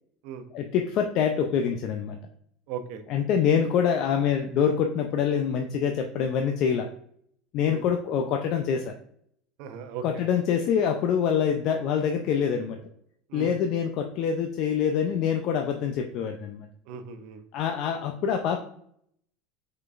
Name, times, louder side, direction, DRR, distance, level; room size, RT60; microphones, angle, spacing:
voice 1, 0.5-2.2 3.1-6.9 7.5-8.9 10.0-12.8 13.3-16.7 17.5-18.7, left 7 dB, 55° left, 4 dB, 0.5 m, -25 dB
voice 2, 2.7-3.0 7.6-7.8 9.6-10.2 13.3-13.5 16.9-17.4, right 7 dB, 65° right, 8 dB, 0.6 m, -37 dB
5.2 x 3.9 x 2.5 m, 0.68 s
supercardioid pair, 110°, 0 cm